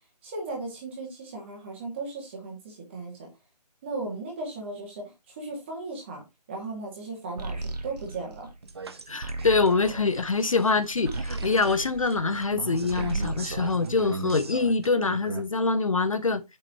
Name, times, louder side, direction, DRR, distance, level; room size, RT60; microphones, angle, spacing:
voice 1, 0.2-3.3 3.8-8.5, right 3 dB, 15° right, 2.3 m, -36 dB
sound 1, 7.4-12.5 12.8-14.6, right 2 dB, 75° right, 1.7 m, -37 dB
sound 2, 8.6-15.5, right 4 dB, 40° right, 0.8 m, -38 dB
voice 2, 9.1-16.4, left 4 dB, 50° left, 0.7 m, -25 dB
7.4 x 6.3 x 3.0 m
figure-of-eight pair, 165°, 21 cm